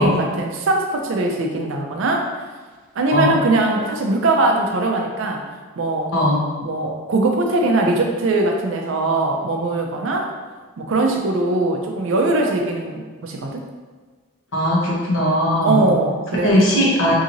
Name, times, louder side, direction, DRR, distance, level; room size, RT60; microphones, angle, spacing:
voice 1, 0.0-2.3 3.0-5.4 5.8-6.1 6.6-10.3 10.8-13.6 15.6-17.0, right 2 dB, 65° right, 2 dB, 0.4 m, -21 dB
voice 2, 6.1-6.5 14.5-15.9 16.4-17.1, equal, 65° left, -4 dB, 0.8 m, -18 dB
2.8 x 2.7 x 2.6 m, 1.4 s
head